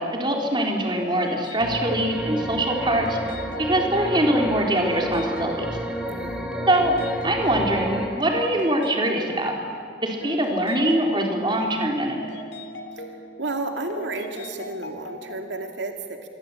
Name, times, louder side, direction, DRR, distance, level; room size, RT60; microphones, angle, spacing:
voice 1, 0.0-3.2 3.6-5.8 6.7-7.0 7.2-9.5 10.0-12.3, right 1 dB, 25° right, 1 dB, 3.9 m, -23 dB
sound 1, 1.0-15.8, left 1 dB, 85° left, 2.9 m, -39 dB
sound 2, 1.6-8.1, equal, 5° right, 2.5 m, -31 dB
voice 2, 6.1-6.5 12.9-16.3, right 2 dB, 85° right, 4 dB, 2.4 m, -32 dB
27.0 x 23.0 x 8.7 m, 2.2 s
head